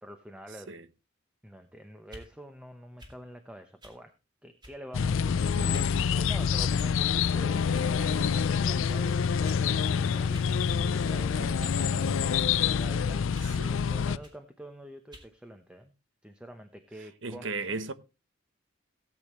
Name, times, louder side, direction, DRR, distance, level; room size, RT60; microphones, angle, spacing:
voice 1, 0.0-0.7 1.4-4.1 4.4-5.3 6.2-15.9 16.2-17.8, equal, 5° right, 0.8 m, -47 dB
sound 1, 2.0-2.3 3.0-3.2 3.8-4.0 4.6-4.9 5.7-5.9 6.8-7.1 7.7-7.9 8.6-8.8 9.4-9.7 10.3-10.5 10.9-11.9 12.5-12.7 13.3-13.6 14.2-14.4 15.1-15.3, equal, 20° right, 2.3 m, -50 dB
sound 2, 4.9-14.2, left 6 dB, 75° left, 0.5 m, -27 dB
voice 2, 5.5-6.0 13.4-13.8 17.2-17.9, right 3 dB, 65° right, 0.9 m, -36 dB
sound 3, 7.7-13.7, left 3 dB, 50° left, 0.9 m, -45 dB
17.0 x 8.3 x 3.1 m
head